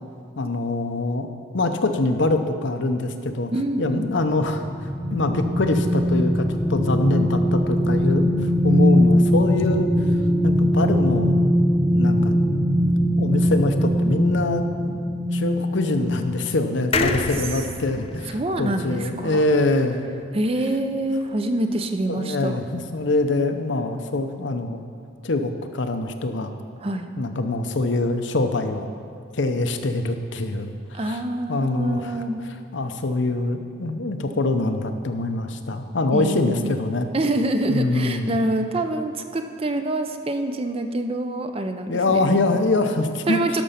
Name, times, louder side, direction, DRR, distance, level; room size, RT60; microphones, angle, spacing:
voice 1, 0.4-1.3 1.5-3.5 3.8-9.9 10.4-11.4 11.9-12.3 13.2-20.1 22.1-24.8 25.2-26.5 27.2-28.9 29.3-31.2 31.5-32.2 32.7-37.1 37.7-38.3 41.9-43.4, left 2 dB, 65° left, 7 dB, 0.7 m, -24 dB
voice 2, 3.5-4.1 16.9-17.2 18.3-19.4 20.3-22.6 26.8-27.1 30.9-32.4 36.1-36.8 37.1-42.2 42.5-42.6 43.3-43.6, right 1 dB, 30° right, 7 dB, 0.5 m, -26 dB
sound 1, 3.7-16.6 17.1-17.2, equal, 10° right, 1.1 m, -21 dB
sound 2, 16.9-20.4 20.8-20.9 21.1-21.2, left 4 dB, 30° left, 0.4 m, -30 dB
12.0 x 6.1 x 5.7 m, 2.4 s
head